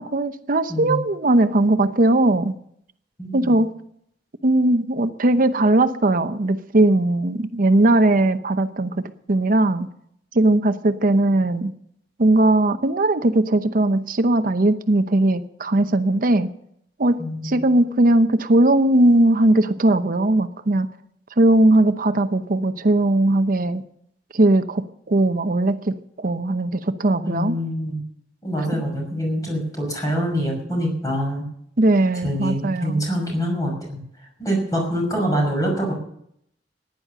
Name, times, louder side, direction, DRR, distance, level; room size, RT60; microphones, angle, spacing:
voice 1, 0.0-2.5 3.3-3.7 4.4-9.9 10.3-11.7 12.2-16.5 17.0-20.9 21.4-23.8 24.3-27.6 31.8-33.0, right 2 dB, 50° right, 10 dB, 0.8 m, -19 dB
voice 2, 0.7-1.0 3.2-3.6 17.2-17.6 27.2-28.0 28.4-31.4 32.2-34.0 34.4-35.9, equal, 20° left, 0 dB, 5.9 m, -25 dB
15.0 x 10.5 x 6.7 m, 0.71 s
head